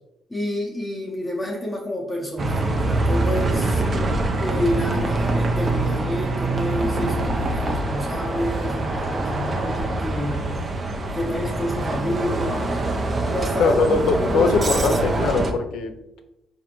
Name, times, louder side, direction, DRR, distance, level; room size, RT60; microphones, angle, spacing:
voice 1, 0.3-3.8 4.4-10.5 11.1-12.7 13.3-13.8 14.2-15.4, left 1 dB, 10° left, -3 dB, 0.6 m, -29 dB
Bus, 2.4-15.5, right 2 dB, 35° right, 0.5 m, -24 dB
voice 2, 13.6-16.2, left 4 dB, 80° left, 6 dB, 0.4 m, -22 dB
4.2 x 2.5 x 2.9 m, 0.91 s
cardioid pair, 90°, 0 cm